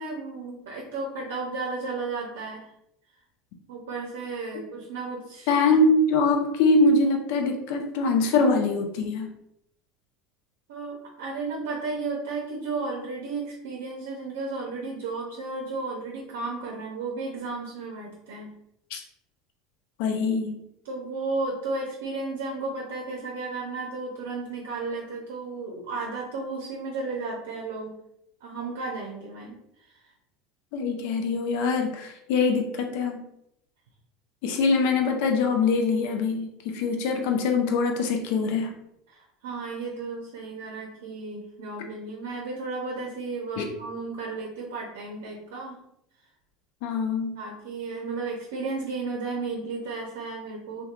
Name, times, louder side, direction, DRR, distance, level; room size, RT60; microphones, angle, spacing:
voice 1, 0.0-2.7 3.7-5.5 10.7-18.5 20.8-28.0 28.4-29.9 39.1-45.8 47.4-50.8, right 3 dB, 75° right, -1 dB, 0.6 m, -33 dB
voice 2, 5.5-9.3 18.9-19.0 20.0-20.6 30.7-33.2 34.4-38.7 43.6-43.7 46.8-47.4, left 3 dB, 65° left, 4 dB, 0.5 m, -23 dB
2.8 x 2.2 x 2.4 m, 0.78 s
hypercardioid pair, 85°, 0 cm